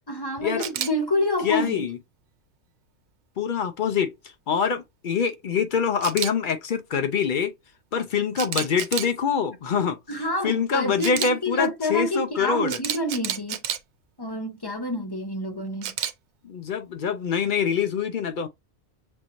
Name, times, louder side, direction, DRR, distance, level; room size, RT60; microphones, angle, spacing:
voice 1, 0.1-1.9 10.1-13.6 14.2-15.9, left 1 dB, 25° left, 0.9 m, -28 dB
Camera, 0.6-0.9 6.0-6.3 8.4-9.1 11.0-11.3 12.7-13.8 15.8-16.1, right 9 dB, 80° right, 0.9 m, -29 dB
voice 2, 1.4-2.0 3.4-4.1 4.5-7.5 7.9-10.0 10.4-12.8 16.4-18.5, left 6 dB, 55° left, 0.6 m, -25 dB
6.2 x 2.5 x 2.9 m
omnidirectional pair, 1.1 m